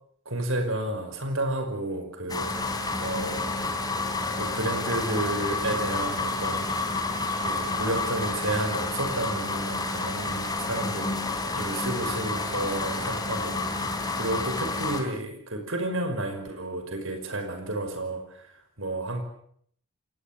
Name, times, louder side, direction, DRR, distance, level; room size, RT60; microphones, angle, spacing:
voice 1, 0.3-3.5 4.3-6.7 7.4-19.2, right 1 dB, 65° right, 7 dB, 5.8 m, -32 dB
sound 1, 2.3-15.0, left 3 dB, 20° left, 3.8 m, -29 dB
28.0 x 18.5 x 7.6 m, 0.64 s
head